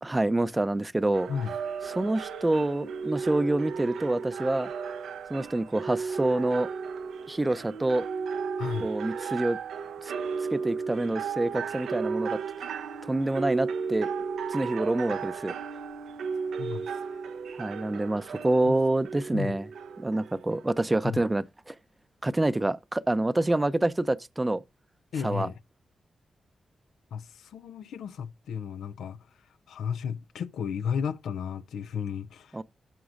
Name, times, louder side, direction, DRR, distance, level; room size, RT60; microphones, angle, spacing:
voice 1, 0.0-1.3 1.9-4.7 5.3-6.7 7.3-8.1 8.8-9.6 10.0-10.1 10.5-12.4 13.1-14.1 14.5-15.5 17.6-19.7 20.0-21.8 22.2-24.6 25.2-25.5 32.5-32.6, right 2 dB, 25° right, 0.5 m, -27 dB
sound 1, 1.1-20.7, right 5 dB, 85° right, 0.6 m, -35 dB
voice 2, 8.6-8.9 15.1-15.2 16.6-17.2 18.6-18.7 19.3-19.6 21.0-21.2 25.1-25.5 27.1-29.2 29.7-32.6, left 7 dB, 85° left, 0.4 m, -34 dB
14.5 x 6.1 x 2.5 m
supercardioid pair, 45°, 0 cm